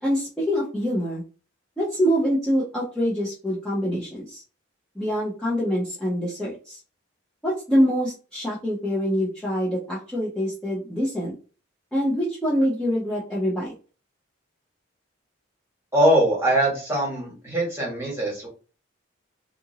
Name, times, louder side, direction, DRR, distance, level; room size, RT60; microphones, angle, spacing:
voice 1, 0.0-1.2 1.8-4.4 5.0-6.8 7.4-11.3 11.9-13.7, equal, 5° left, -8 dB, 0.6 m, -25 dB
voice 2, 15.9-18.5, right 1 dB, 10° right, -5 dB, 1.3 m, -22 dB
2.8 x 2.5 x 2.7 m, 0.36 s
head